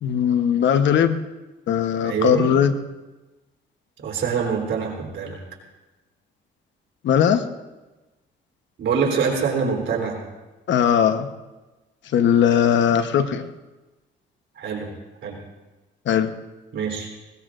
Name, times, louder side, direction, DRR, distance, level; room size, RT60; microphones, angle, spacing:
voice 1, 0.0-1.2 1.7-2.7 7.0-7.4 10.7-11.3 12.1-13.5 16.1-16.3, left 8 dB, 70° left, 9 dB, 1.0 m, -19 dB
voice 2, 2.0-2.5 4.0-5.4 8.8-10.2 14.6-14.9 15.2-15.4 16.7-17.1, right 6 dB, 65° right, 0 dB, 3.6 m, -24 dB
20.0 x 19.5 x 2.5 m, 1.1 s
cardioid pair, 90°, 20 cm